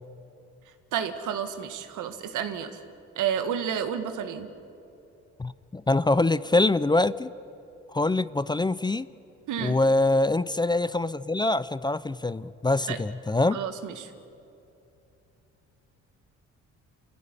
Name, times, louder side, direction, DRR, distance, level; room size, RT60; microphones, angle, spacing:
voice 1, 0.9-2.8 3.2-4.5 9.5-9.8 12.9-13.0 13.5-14.1, right 8 dB, 80° right, 8 dB, 1.9 m, -30 dB
voice 2, 5.4-7.3 7.9-9.1 9.6-13.6, left 2 dB, 15° left, 16 dB, 0.5 m, -24 dB
27.5 x 16.0 x 10.0 m, 2.8 s
cardioid pair, 90°, 30 cm